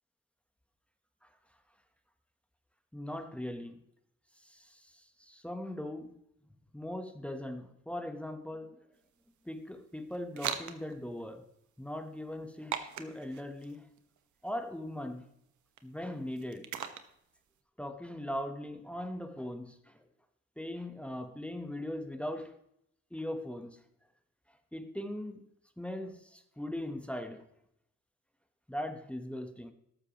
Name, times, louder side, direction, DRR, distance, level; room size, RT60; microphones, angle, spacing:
voice 1, 2.9-3.8 4.4-6.2 6.7-8.8 9.4-11.5 11.8-13.9 14.4-15.2 15.8-16.7 17.8-20.1 20.6-22.5 23.1-23.8 24.7-25.4 25.8-27.5 28.7-29.7, left 1 dB, 5° left, 1.1 m, -40 dB
sound 1, 8.9-17.6, right 9 dB, 75° right, 1.2 m, -44 dB
14.0 x 12.0 x 3.0 m
cardioid pair, 90°, 30 cm